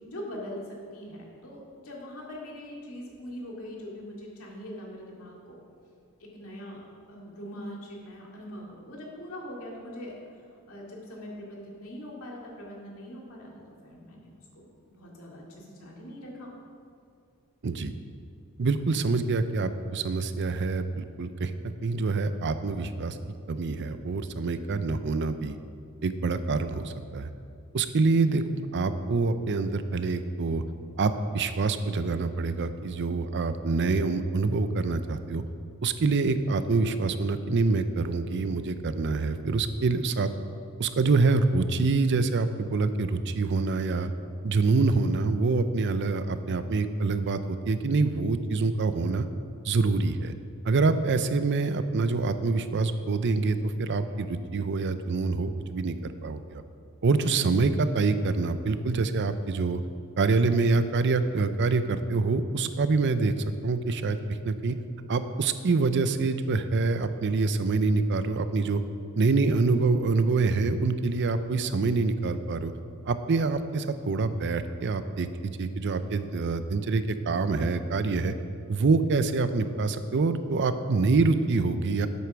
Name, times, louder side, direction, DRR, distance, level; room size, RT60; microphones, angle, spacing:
voice 1, 0.0-5.6 6.2-10.3 10.7-16.5, equal, 70° left, -3 dB, 2.3 m, -42 dB
voice 2, 18.6-23.2 23.5-25.6 26.0-27.3 27.7-28.4 28.7-30.6 31.0-35.4 35.8-40.3 40.8-44.1 44.4-49.3 49.6-50.3 50.6-56.6 57.0-59.8 60.2-63.3 63.6-64.2 64.4-64.8 65.1-68.8 69.2-72.7 73.1-78.3 78.7-82.1, right 3 dB, 55° right, 11 dB, 0.5 m, -26 dB
8.4 x 7.8 x 6.0 m, 2.4 s
head